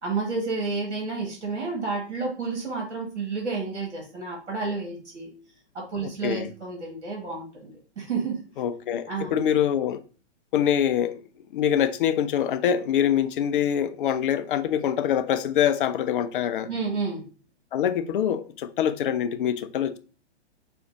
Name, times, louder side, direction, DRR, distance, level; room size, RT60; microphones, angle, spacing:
voice 1, 0.0-5.3 5.7-8.4 9.1-9.3 16.7-17.2, right 4 dB, 70° right, 1.7 m, -30 dB
voice 2, 6.0-6.5 8.6-10.0 10.5-11.2 11.5-16.7 17.7-20.0, left 9 dB, 50° left, 0.6 m, -24 dB
5.2 x 2.4 x 3.9 m
figure-of-eight pair, 115°, 35 cm